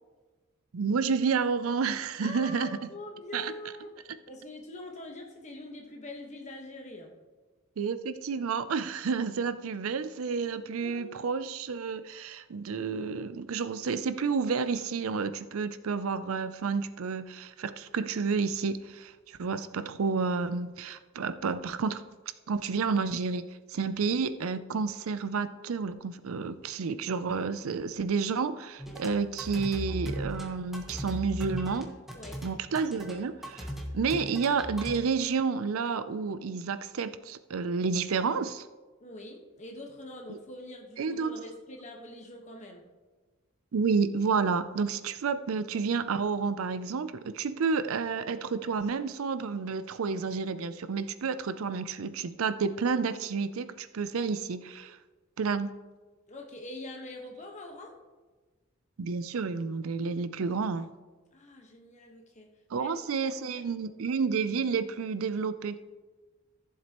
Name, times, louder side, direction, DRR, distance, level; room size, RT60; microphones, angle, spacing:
voice 1, 0.7-2.8 3.3-3.5 7.8-22.0 22.5-31.9 32.4-33.7 33.9-38.7 40.3-40.4 41.0-41.4 43.7-55.0 55.4-55.7 59.0-60.9 62.7-65.8, right 5 dB, 75° right, 13 dB, 0.5 m, -30 dB
voice 2, 2.2-3.9 4.3-7.1 10.5-11.2 32.1-32.4 39.0-42.8 56.3-57.9 61.3-62.5 62.7-62.9 63.2-63.3 63.8-63.9, left 2 dB, 35° left, 1 dB, 1.3 m, -44 dB
sound 1, 28.8-35.0, equal, ahead, 1.2 m, -38 dB
14.5 x 7.4 x 3.0 m, 1.3 s
head